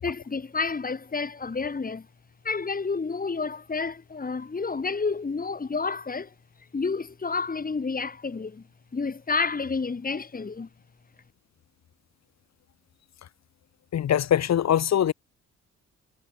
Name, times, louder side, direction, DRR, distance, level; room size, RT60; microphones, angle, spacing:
voice 1, 0.0-2.1 2.4-6.3 6.7-8.6 8.9-10.7, left 4 dB, 30° left, 5.5 m, -30 dB
voice 2, 13.9-15.1, left 10 dB, 60° left, 2.7 m, -22 dB
cardioid pair, 90°, 30 cm